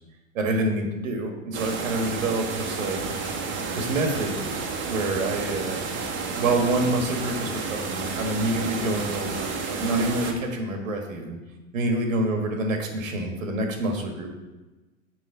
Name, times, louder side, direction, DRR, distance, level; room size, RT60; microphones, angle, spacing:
voice 1, 0.3-3.1 3.7-4.4 4.9-5.8 6.4-11.4 11.7-14.3, right 2 dB, 85° right, 3 dB, 1.6 m, -27 dB
sound 1, 1.5-10.3, right 4 dB, 30° right, 1.0 m, -31 dB
6.3 x 4.9 x 4.5 m, 1.1 s
hypercardioid pair, 120°, 39 cm